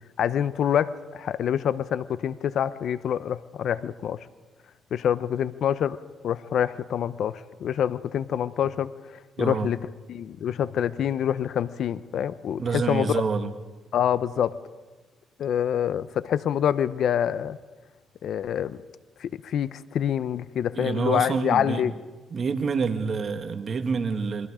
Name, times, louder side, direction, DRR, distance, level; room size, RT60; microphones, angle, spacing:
voice 1, 0.2-4.2 4.9-6.0 6.2-9.8 10.1-13.2 13.9-14.6 15.4-17.6 18.2-18.8 19.2-21.9, left 9 dB, 70° left, 16 dB, 0.8 m, -26 dB
voice 2, 9.4-9.7 12.6-13.5 20.8-21.9 22.3-24.5, right 5 dB, 45° right, 7 dB, 1.9 m, -27 dB
28.0 x 22.5 x 5.0 m, 1.3 s
cardioid pair, 90°, 0 cm